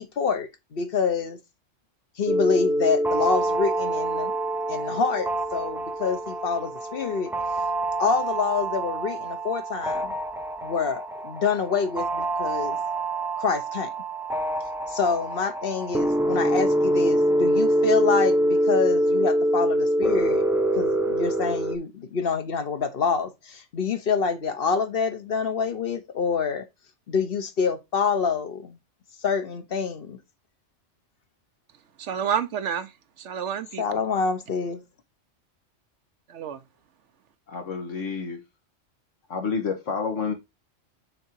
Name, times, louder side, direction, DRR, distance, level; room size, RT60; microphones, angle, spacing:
voice 1, 0.0-1.4 2.2-4.3 4.7-7.3 8.0-10.2 10.6-12.8 13.4-13.9 14.9-26.6 27.1-28.8 29.2-30.2 33.8-34.8, left 5 dB, 50° left, 1.1 m, -27 dB
sound 1, 2.3-21.8, right 1 dB, 5° right, 0.3 m, -25 dB
voice 2, 32.0-32.9 33.2-34.0 36.3-36.6, right 8 dB, 70° right, 1.0 m, -29 dB
voice 3, 37.5-38.4 39.3-40.3, left 5 dB, 80° left, 1.9 m, -29 dB
6.5 x 3.8 x 4.6 m
omnidirectional pair, 1.3 m